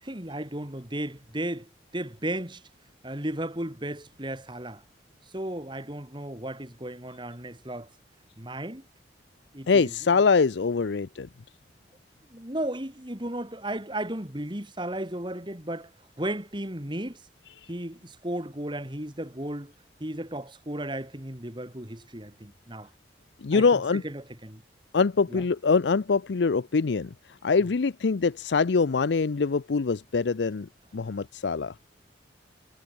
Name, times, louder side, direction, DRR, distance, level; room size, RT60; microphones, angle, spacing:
voice 1, 0.0-2.6 3.0-4.8 5.2-7.9 8.4-8.9 9.5-9.9 12.3-15.9 16.2-17.2 17.7-19.7 20.0-22.9 23.5-24.6 25.3-25.4, right 1 dB, 25° right, 3.1 m, -35 dB
voice 2, 9.7-11.3 17.6-17.7 23.4-24.0 24.9-27.1 27.4-30.7 30.9-31.7, left 4 dB, 80° left, 0.5 m, -24 dB
head